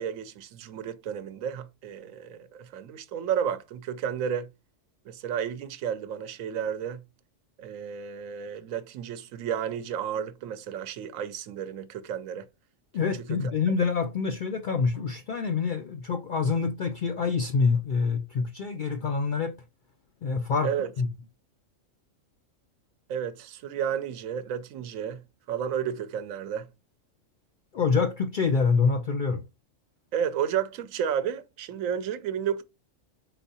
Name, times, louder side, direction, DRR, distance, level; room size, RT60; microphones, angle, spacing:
voice 1, 0.0-4.5 5.1-7.0 7.6-12.5 20.6-20.9 23.1-25.2 25.5-26.7 30.1-32.6, right 8 dB, 85° right, 1.0 m, -32 dB
voice 2, 12.9-19.5 20.2-20.7 21.0-21.1 27.7-29.4, left 5 dB, 65° left, 0.4 m, -26 dB
4.4 x 3.9 x 2.7 m
omnidirectional pair, 1.4 m